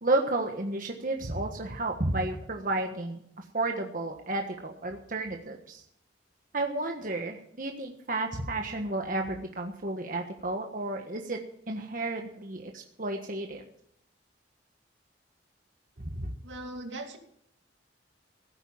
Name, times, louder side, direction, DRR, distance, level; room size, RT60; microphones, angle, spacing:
voice 1, 0.0-3.2 3.5-5.8 6.5-11.4 11.7-13.6 16.0-16.3, right 2 dB, 50° right, 3 dB, 1.4 m, -32 dB
voice 2, 16.4-17.2, right 2 dB, 85° right, 4 dB, 2.7 m, -39 dB
16.5 x 9.1 x 7.2 m, 0.71 s
head